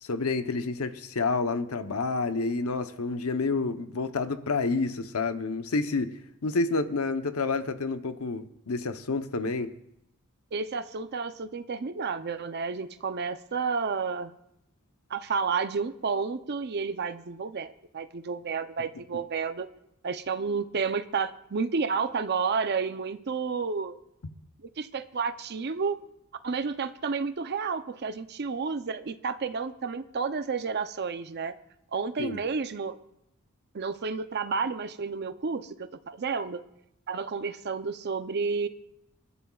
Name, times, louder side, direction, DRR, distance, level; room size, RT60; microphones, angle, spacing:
voice 1, 0.0-9.7 32.2-32.4, left 3 dB, 90° left, 9 dB, 0.8 m, -29 dB
voice 2, 10.5-14.3 15.1-19.7 20.0-24.0 24.8-26.0 26.4-31.5 31.9-32.9 33.7-36.6 37.1-38.7, right 5 dB, 50° right, 10 dB, 0.6 m, -31 dB
27.5 x 11.0 x 2.4 m, 0.80 s
head